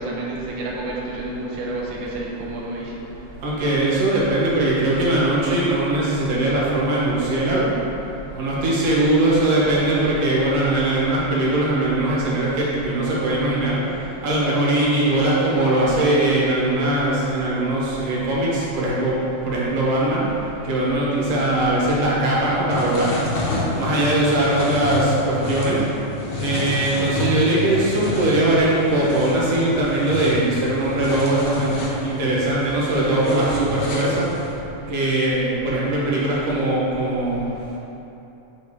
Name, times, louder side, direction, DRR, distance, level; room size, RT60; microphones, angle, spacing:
voice 1, 0.0-2.9, right 2 dB, 85° right, -4 dB, 1.1 m, -29 dB
voice 2, 3.4-7.7 8.3-13.8 14.2-19.2 19.4-20.2 20.7-23.1 23.7-25.8 26.4-34.3 34.9-37.4, right 1 dB, 60° right, -6 dB, 2.1 m, -20 dB
sound 1, 22.7-34.5, left 2 dB, 60° left, 1.4 m, -30 dB
7.2 x 5.1 x 3.6 m, 2.9 s
omnidirectional pair, 3.5 m